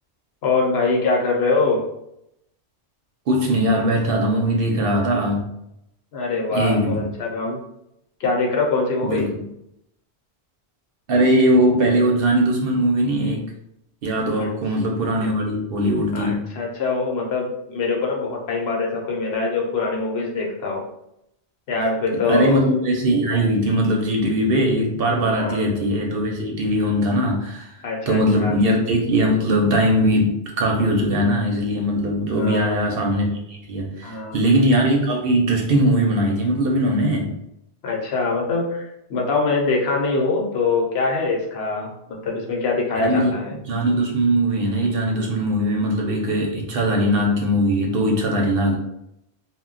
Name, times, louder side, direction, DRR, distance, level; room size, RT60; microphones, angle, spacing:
voice 1, 0.4-1.8 6.1-7.6 8.2-9.3 14.4-14.5 16.1-20.8 21.7-22.7 25.3-25.6 27.8-28.5 32.3-32.8 34.0-34.4 37.8-43.5, left 3 dB, 70° left, -1 dB, 0.9 m, -23 dB
voice 2, 3.3-5.5 6.5-7.1 9.0-9.4 11.1-13.5 14.0-16.4 22.3-37.3 43.0-43.3 43.7-48.8, right 1 dB, 65° right, 1 dB, 0.7 m, -20 dB
2.1 x 2.1 x 3.7 m, 0.80 s
omnidirectional pair, 1.1 m